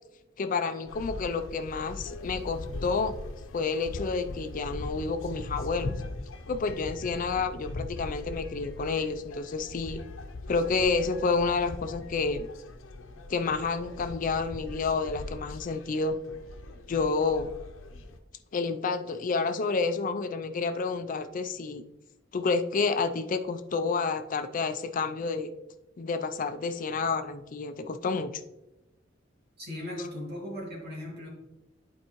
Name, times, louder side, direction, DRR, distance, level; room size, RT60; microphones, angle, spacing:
voice 1, 0.4-3.1 3.5-5.9 6.5-10.0 10.5-12.5 13.3-16.2 16.9-17.5 18.5-21.8 22.3-25.5 26.0-28.3, left 4 dB, 45° left, 9 dB, 0.4 m, -29 dB
sound 1, 0.9-18.2, left 2 dB, 85° left, 0.7 m, -40 dB
voice 2, 29.6-31.3, left 1 dB, 55° right, -3 dB, 2.6 m, -37 dB
11.0 x 4.5 x 3.0 m, 1.0 s
head